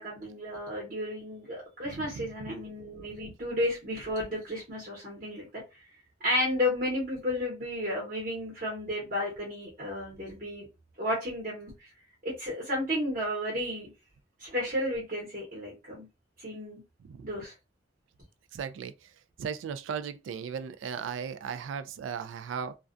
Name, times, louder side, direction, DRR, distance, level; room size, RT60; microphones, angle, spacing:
voice 1, 0.0-5.5 6.2-10.7 11.0-11.7 12.2-13.9 14.4-16.0 16.4-16.8 17.2-17.5, left 1 dB, 45° right, 1.0 m, -32 dB
voice 2, 1.9-2.3 3.2-3.3 17.0-17.4 18.5-18.9 19.4-22.8, right 7 dB, 80° right, 0.3 m, -37 dB
2.3 x 2.2 x 2.5 m
head